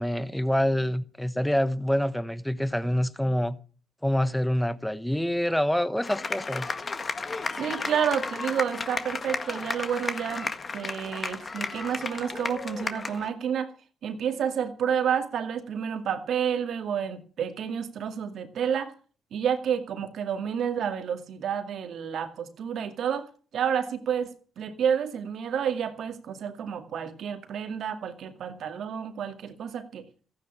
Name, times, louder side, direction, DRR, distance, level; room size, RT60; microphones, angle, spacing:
voice 1, 0.0-3.6 4.0-6.7, equal, 5° left, 1.1 m, -26 dB
sound 1, 6.0-13.3, left 4 dB, 35° left, 1.7 m, -33 dB
voice 2, 7.6-13.7 14.0-18.9 19.3-30.1, right 8 dB, 65° right, 2.2 m, -30 dB
15.0 x 9.5 x 7.1 m
cardioid pair, 90°, 0 cm